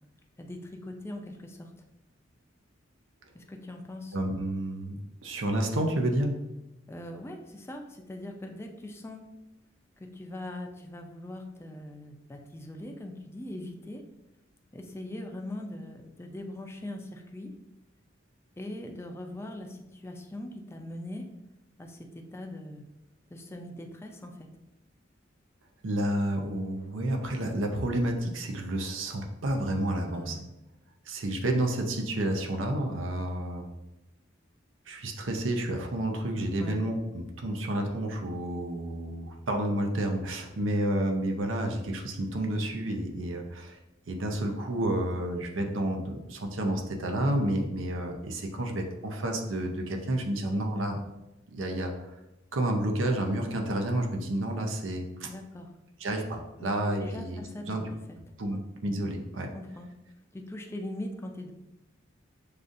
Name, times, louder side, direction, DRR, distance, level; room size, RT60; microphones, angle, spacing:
voice 1, 0.4-1.7 3.3-4.2 6.9-9.2 10.0-14.0 14.7-17.5 18.6-21.3 21.8-22.8 23.3-24.5 30.1-30.5 36.6-36.8 55.2-55.7 56.6-56.7 57.0-58.2 58.9-59.0 59.5-59.9 60.3-61.5, left 1 dB, 15° left, 3 dB, 0.4 m, -41 dB
voice 2, 4.1-6.4 25.8-30.4 31.1-33.7 34.9-43.8 44.1-51.0 51.5-52.1 52.5-55.3 56.0-57.4 57.7-57.8 58.4-59.5, right 1 dB, 85° right, 3 dB, 0.6 m, -30 dB
6.5 x 2.4 x 2.6 m, 0.96 s
head